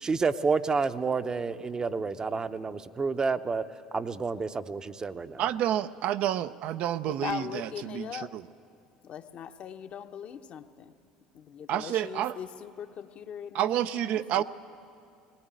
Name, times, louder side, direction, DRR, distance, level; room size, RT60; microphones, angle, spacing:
voice 1, 0.0-3.6 3.9-5.4, right 4 dB, 25° right, 11 dB, 0.8 m, -29 dB
voice 2, 5.4-8.4 11.7-12.3 13.5-14.4, right 11 dB, 60° right, 11 dB, 0.6 m, -29 dB
voice 3, 7.0-8.4 9.0-10.9 11.3-14.4, left 8 dB, 50° left, 6 dB, 1.0 m, -40 dB
19.0 x 19.0 x 9.1 m, 2.4 s
hypercardioid pair, 80°, 3 cm